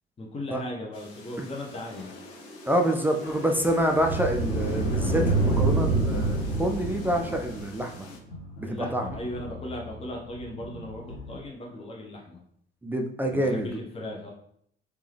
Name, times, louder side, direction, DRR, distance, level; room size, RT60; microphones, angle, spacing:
voice 1, 0.2-2.2 8.6-12.4 13.3-14.3, left 1 dB, 20° left, -1 dB, 0.9 m, -37 dB
sound 1, 0.9-8.2, left 2 dB, 45° left, 0.8 m, -41 dB
sound 2, 2.2-7.8, right 3 dB, 80° right, 0.7 m, -28 dB
voice 2, 2.7-8.1 8.9-9.1 12.8-13.7, right 1 dB, 5° right, 2 dB, 0.4 m, -26 dB
sound 3, 3.2-11.4, left 2 dB, 80° left, 1.0 m, -44 dB
3.4 x 3.0 x 3.3 m, 0.69 s
figure-of-eight pair, 50°, 32 cm